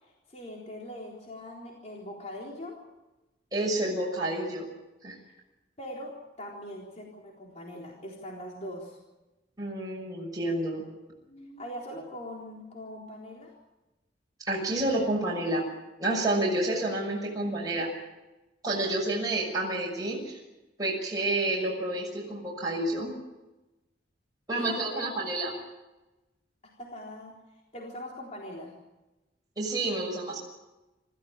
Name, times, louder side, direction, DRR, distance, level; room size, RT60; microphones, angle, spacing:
voice 1, 0.0-2.8 5.8-9.0 11.3-13.5 24.5-25.3 26.8-27.3 27.7-28.8, left 1 dB, 40° left, -1 dB, 3.9 m, -41 dB
voice 2, 3.5-4.7 5.0-5.2 9.6-10.8 14.4-15.6 16.0-17.9 18.6-20.4 20.8-23.1 24.5-25.5 29.6-30.4, right 2 dB, 20° right, -3 dB, 6.3 m, -29 dB
26.5 x 15.0 x 8.8 m, 1.0 s
head